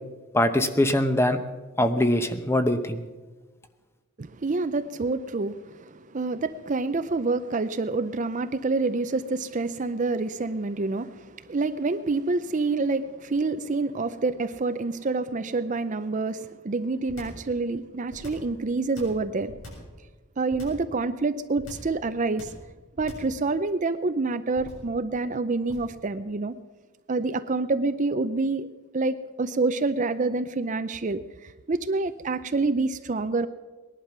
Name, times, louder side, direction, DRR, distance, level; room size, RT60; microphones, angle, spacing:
voice 1, 0.3-1.4 1.8-3.0, left 1 dB, 10° left, 9 dB, 0.9 m, -22 dB
voice 2, 4.2-19.5 20.4-22.5 23.0-26.6 27.1-28.7 28.9-33.5, right 3 dB, 35° right, 11 dB, 0.5 m, -27 dB
sound 1, 17.1-17.5 18.1-18.5 18.9-19.9 20.5-20.9 21.6-22.0 22.4-22.7 23.0-23.4 24.5-24.9 25.7-26.0, equal, 75° left, 7.1 m, -43 dB
19.5 x 11.0 x 5.9 m, 1.3 s
head